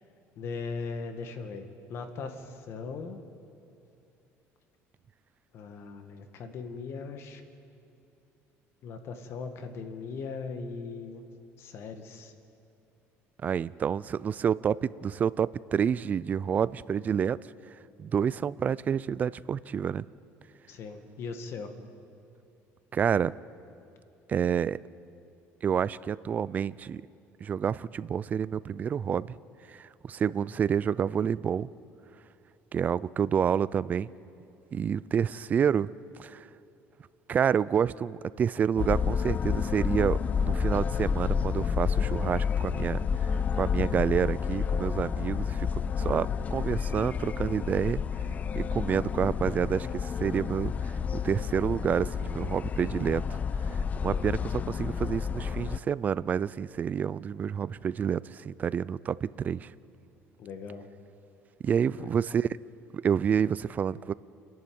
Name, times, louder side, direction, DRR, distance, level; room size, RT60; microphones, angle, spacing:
voice 1, 0.4-3.2 5.5-7.4 8.8-11.2 11.6-12.3 20.7-21.7 54.1-54.4 60.4-60.9 62.0-62.1, left 4 dB, 55° left, 7 dB, 1.9 m, -39 dB
voice 2, 13.4-17.4 18.0-20.0 22.9-23.3 24.3-24.8 25.6-27.0 27.4-29.4 29.7-31.7 32.7-34.1 34.7-35.9 36.2-36.5 37.3-48.0 48.6-53.4 53.7-59.7 61.6-62.6 62.9-64.1, right 7 dB, 30° right, 19 dB, 0.4 m, -28 dB
sound 1, 38.8-55.8, left 6 dB, 30° left, 0.4 m, -30 dB
28.5 x 11.0 x 9.4 m, 2.7 s
cardioid pair, 140°, 5 cm